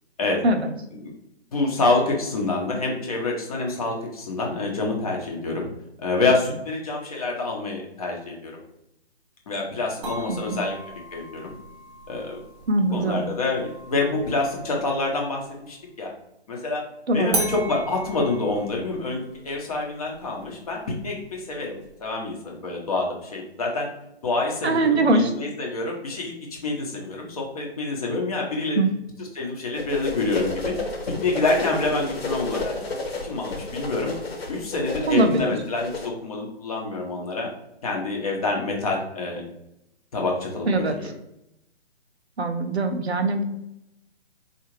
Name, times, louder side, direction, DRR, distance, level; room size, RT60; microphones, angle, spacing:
voice 1, 1.5-5.7 6.0-8.6 9.5-11.6 12.1-12.4 12.9-16.1 16.5-16.8 17.1-23.9 24.2-28.8 29.3-30.8 31.1-32.8 33.2-34.1 34.5-35.9 36.2-37.5 37.8-39.4 40.1-41.1, left 3 dB, 35° left, 0 dB, 0.7 m, -27 dB
sound 1, 10.0-15.6 17.3-22.3, right 2 dB, 25° right, 0.7 m, -38 dB
voice 2, 10.3-10.6 12.7-13.3 17.1-17.4 24.6-25.3 28.8-28.9 35.1-35.5 40.7-41.0 42.4-43.4, right 2 dB, 70° right, 6 dB, 0.6 m, -22 dB
sound 2, 29.8-36.1, left 3 dB, 65° left, 1.0 m, -32 dB
3.7 x 2.4 x 3.0 m, 0.82 s
figure-of-eight pair, 140°, 33 cm